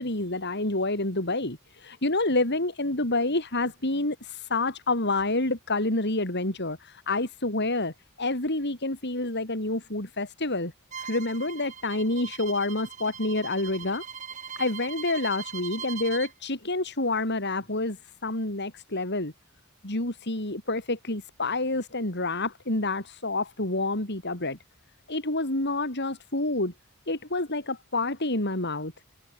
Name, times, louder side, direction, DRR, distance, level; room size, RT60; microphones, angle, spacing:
voice 1, 0.0-10.7 11.0-14.0 14.6-18.0 18.2-19.3 19.8-24.6 25.1-26.7 27.1-28.9, left 2 dB, 50° left, 4.7 m, -28 dB
Bowed string instrument, 10.9-16.3, right 7 dB, 35° right, 7.1 m, -40 dB
head